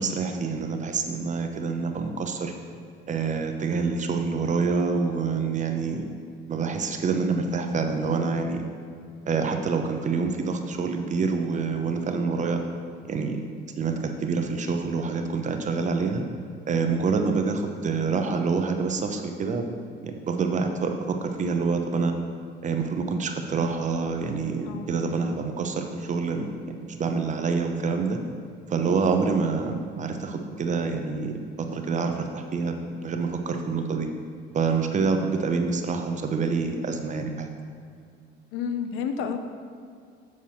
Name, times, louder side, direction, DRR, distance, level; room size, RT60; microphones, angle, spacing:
voice 1, 0.0-2.5 3.1-6.0 6.5-8.6 9.3-12.6 13.1-13.4 13.8-16.2 16.7-19.7 20.0-22.1 22.6-28.2 28.7-34.1 34.5-37.5, right 4 dB, 35° right, 5 dB, 0.8 m, -27 dB
voice 2, 38.5-39.4, left 6 dB, 85° left, 7 dB, 0.7 m, -30 dB
7.2 x 4.7 x 5.7 m, 2.3 s
cardioid pair, 115°, 21 cm